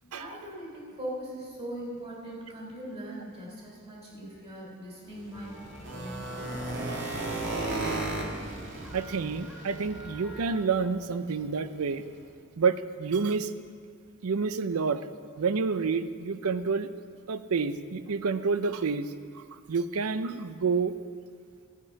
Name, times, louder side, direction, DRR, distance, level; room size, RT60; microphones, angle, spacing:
voice 1, 0.0-5.6 5.9-6.7, right 1 dB, 30° right, -4 dB, 3.5 m, -40 dB
sound 1, 5.1-10.3 10.7-10.8 11.2-11.4 11.7-11.8 12.2-12.3, right 2 dB, 60° right, 1.8 m, -34 dB
sound 2, 5.3-10.7, equal, 5° right, 1.3 m, -46 dB
voice 2, 8.9-12.0 12.6-13.5 14.2-15.1 15.4-16.9 17.3-19.1 19.4-19.5 19.7-21.0, right 5 dB, 80° right, 13 dB, 0.5 m, -28 dB
12.5 x 8.8 x 5.8 m, 2.1 s
head